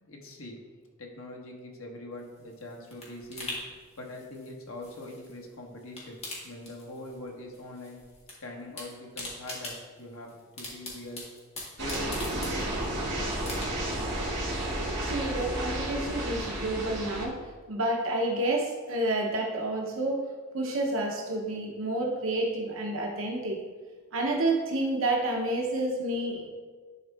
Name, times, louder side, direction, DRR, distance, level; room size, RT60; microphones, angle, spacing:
voice 1, 0.0-0.7 1.0-3.5 4.0-8.0 8.4-11.2 11.8-14.1, left 1 dB, 85° left, 1 dB, 1.3 m, -43 dB
sound 1, 2.2-5.5 5.8-7.3 7.5-8.3 8.6-13.0 13.4-14.0 14.4-14.5, left 2 dB, 30° left, 1.8 m, -42 dB
sound 2, 11.8-17.3, right 1 dB, 55° right, 2.3 m, -32 dB
voice 2, 15.0-17.4 17.7-20.2 20.5-23.6 24.1-26.5, right 1 dB, 70° right, 0 dB, 0.9 m, -29 dB
10.5 x 4.4 x 3.5 m, 1.4 s
head